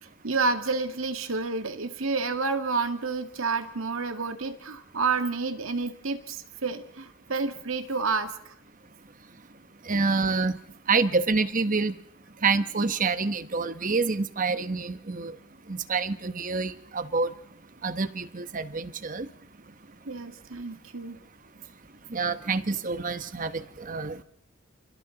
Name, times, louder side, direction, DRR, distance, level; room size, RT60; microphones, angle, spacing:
voice 1, 0.2-8.5 20.1-21.2, right 4 dB, 85° right, 7 dB, 2.1 m, -29 dB
voice 2, 9.8-10.6 10.9-11.9 12.4-15.4 15.7-17.3 17.8-19.3 22.1-24.2, right 4 dB, 40° right, 11 dB, 1.1 m, -27 dB
29.0 x 29.0 x 4.0 m, 0.72 s
head